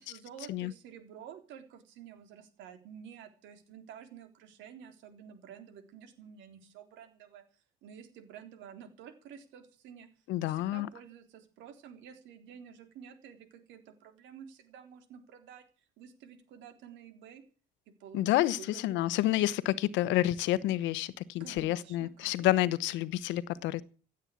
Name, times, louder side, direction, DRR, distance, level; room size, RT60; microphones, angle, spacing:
voice 1, 0.0-7.4 7.8-10.1 10.4-15.6 16.0-17.4 17.9-19.0 21.4-22.8, right 8 dB, 80° right, 3.7 m, -51 dB
voice 2, 10.3-10.9 18.1-23.8, left 15 dB, 80° left, 1.0 m, -29 dB
16.0 x 9.0 x 8.4 m
supercardioid pair, 85°, 19 cm